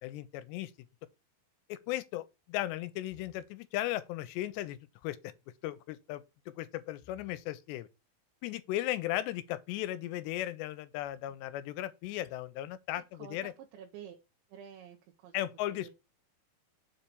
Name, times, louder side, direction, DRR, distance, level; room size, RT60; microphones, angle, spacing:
voice 1, 0.0-0.7 1.7-5.3 5.6-7.9 8.4-13.5 15.3-15.9, left 14 dB, 85° left, 2.8 m, -36 dB
voice 2, 13.2-14.2 14.5-15.4, right 9 dB, 85° right, 3.6 m, -49 dB
7.4 x 4.4 x 6.8 m
omnidirectional pair, 5.0 m